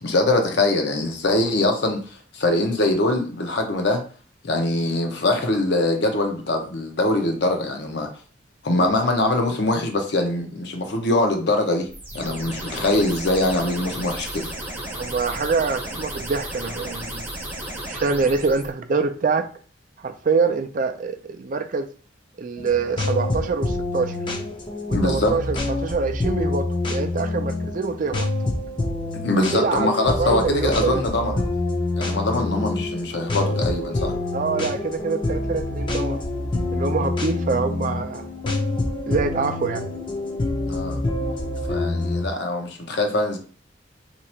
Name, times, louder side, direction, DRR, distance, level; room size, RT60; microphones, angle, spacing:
voice 1, 0.0-4.0 4.4-8.1 8.6-11.9 12.1-14.5 24.9-25.4 29.2-31.5 32.0-34.2 40.6-41.0 41.7-43.4, left 2 dB, 60° left, 0.8 m, -23 dB
sound 1, 11.9-18.7, right 1 dB, 10° right, 0.7 m, -34 dB
voice 2, 14.9-17.3 17.9-19.4 20.0-21.9 22.4-24.2 24.9-28.3 29.5-29.9 30.2-31.0 34.3-36.2 36.7-38.3 39.1-39.9, right 4 dB, 45° right, 0.4 m, -25 dB
sound 2, 22.6-42.2, left 2 dB, 25° left, 0.6 m, -26 dB
2.9 x 2.4 x 4.3 m
head